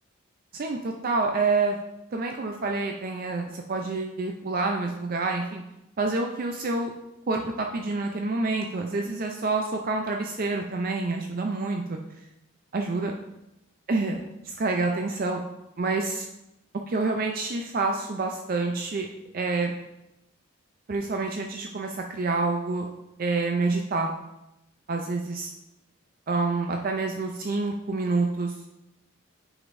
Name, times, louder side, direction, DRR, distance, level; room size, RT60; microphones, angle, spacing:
voice 1, 0.5-1.8 2.1-5.6 6.0-6.9 7.3-12.0 12.7-13.1 13.9-15.4 15.8-16.3 16.9-19.1 19.3-19.7 20.9-22.9 23.2-24.1 24.9-25.5 26.3-28.7, right 3 dB, 45° right, 3 dB, 0.4 m, -27 dB
9.4 x 5.0 x 2.6 m, 0.90 s
head